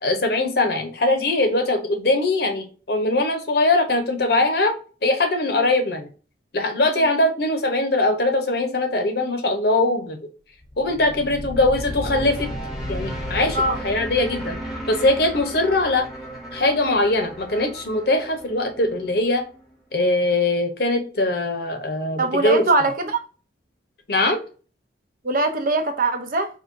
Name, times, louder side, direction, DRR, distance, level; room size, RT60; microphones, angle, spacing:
voice 1, 0.0-4.7 5.0-6.1 6.5-10.2 10.8-12.5 12.9-14.6 14.9-16.1 16.5-19.4 19.9-22.6 24.1-24.4, left 2 dB, 60° left, 0.9 m, -21 dB
sound 1, 10.6-19.7, equal, ahead, 1.0 m, -34 dB
voice 2, 22.2-23.2 25.2-26.5, right 2 dB, 50° right, 0.7 m, -22 dB
4.6 x 2.9 x 2.6 m
head